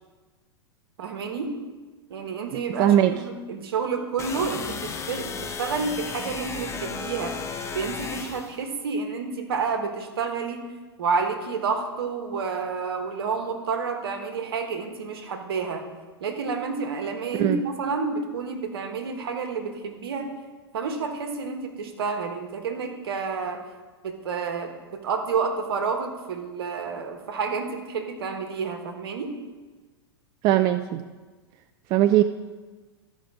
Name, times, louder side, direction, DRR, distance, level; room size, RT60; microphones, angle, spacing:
voice 1, 1.0-1.6 2.1-7.4 7.7-10.7 11.0-15.8 16.2-20.3 20.7-23.6 24.0-29.4, right 5 dB, 60° right, 5 dB, 1.3 m, -29 dB
voice 2, 2.7-3.1 17.3-17.6 30.4-31.0 31.9-32.2, right 12 dB, 30° right, 10 dB, 0.3 m, -20 dB
sound 1, 4.2-8.6, left 5 dB, 20° left, 0.8 m, -34 dB
13.5 x 5.2 x 4.8 m, 1.3 s
figure-of-eight pair, 95°, 14 cm